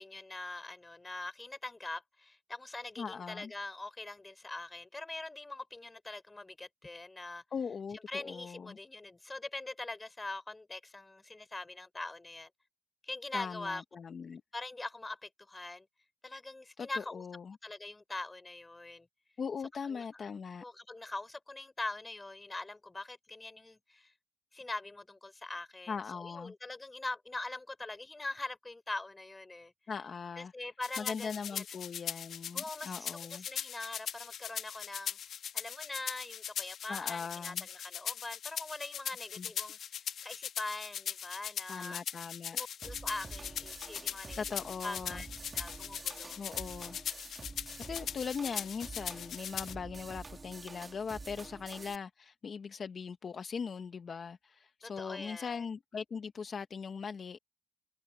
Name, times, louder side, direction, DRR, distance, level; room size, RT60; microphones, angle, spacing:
voice 1, 0.0-7.4 7.9-12.5 13.0-13.8 14.5-15.9 16.2-17.2 17.6-19.1 19.9-20.0 20.6-24.1 24.5-29.7 30.4-31.6 32.5-35.2 35.5-42.0 42.5-44.4 44.8-45.3 45.5-46.4 54.8-55.6, left 2 dB, 20° left, 3.6 m, -43 dB
voice 2, 3.0-3.5 7.5-8.8 13.3-14.4 16.8-17.6 19.4-20.6 25.9-26.5 29.9-30.5 31.0-33.4 36.9-37.7 39.4-39.5 41.7-42.6 44.4-45.2 46.4-47.0 47.9-57.4, left 6 dB, 45° left, 1.0 m, -40 dB
sound 1, 30.8-49.8, left 9 dB, 65° left, 1.1 m, -40 dB
sound 2, 42.8-52.0, right 3 dB, 25° right, 1.5 m, -48 dB
cardioid pair, 90°, 0 cm